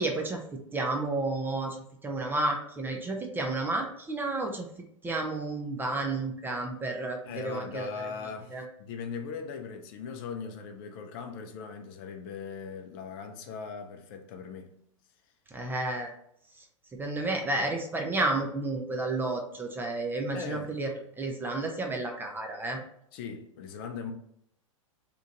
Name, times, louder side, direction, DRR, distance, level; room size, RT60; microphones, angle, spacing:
voice 1, 0.0-1.8 2.0-4.7 5.0-7.9 8.5-8.6 15.5-16.1 16.6-16.7 17.0-20.9 21.2-22.8, right 2 dB, 10° right, 0.4 m, -31 dB
voice 2, 7.2-14.8 20.3-20.8 23.1-24.1, left 6 dB, 45° left, 0.5 m, -39 dB
2.9 x 2.4 x 3.8 m
figure-of-eight pair, 100°, 17 cm